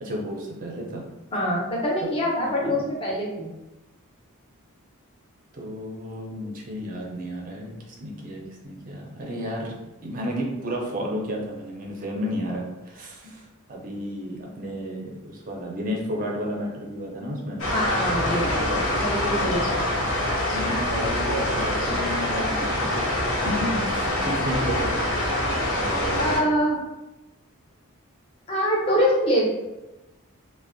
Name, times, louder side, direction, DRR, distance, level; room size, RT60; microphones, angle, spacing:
voice 1, 0.0-1.1 2.6-2.8 5.5-17.6 19.2-19.8 20.5-23.1 23.4-23.6 23.9-24.8 25.7-26.6, equal, 40° right, -1 dB, 0.4 m, -32 dB
voice 2, 1.3-3.5 13.2-13.3 17.7-18.5 19.0-19.8 24.1-24.2 26.2-26.8 28.5-29.5, equal, 25° left, -3 dB, 0.5 m, -24 dB
sound 1, 17.6-26.4, left 1 dB, 75° left, 0.6 m, -25 dB
2.5 x 2.0 x 2.5 m, 1.0 s
head